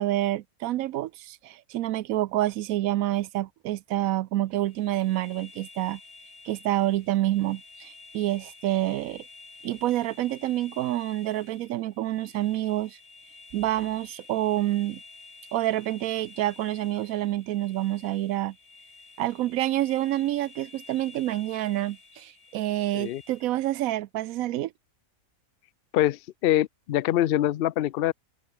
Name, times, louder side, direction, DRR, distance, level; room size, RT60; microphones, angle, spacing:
voice 1, 0.0-6.0 6.4-9.2 9.6-13.0 13.5-15.0 15.5-18.5 19.2-24.7, right 14 dB, 75° right, 1.0 m, -28 dB
sound 1, 4.5-23.7, left 3 dB, 45° left, 2.9 m, -50 dB
voice 2, 25.9-28.1, left 13 dB, 70° left, 0.5 m, -24 dB
open air
omnidirectional pair, 1.6 m